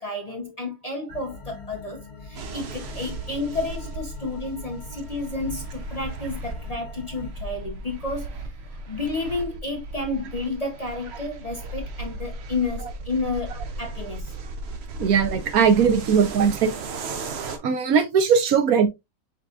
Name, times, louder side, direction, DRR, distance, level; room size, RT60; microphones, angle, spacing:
voice 1, 0.0-14.3, left 2 dB, 35° left, 0.7 m, -31 dB
sound 1, 1.1-7.3, left 4 dB, 85° left, 1.5 m, -43 dB
sound 2, 2.4-17.6, right 2 dB, 55° right, 0.9 m, -36 dB
voice 2, 15.0-16.7 17.6-18.9, right 6 dB, 80° right, 1.3 m, -19 dB
5.6 x 3.9 x 2.4 m
omnidirectional pair, 1.5 m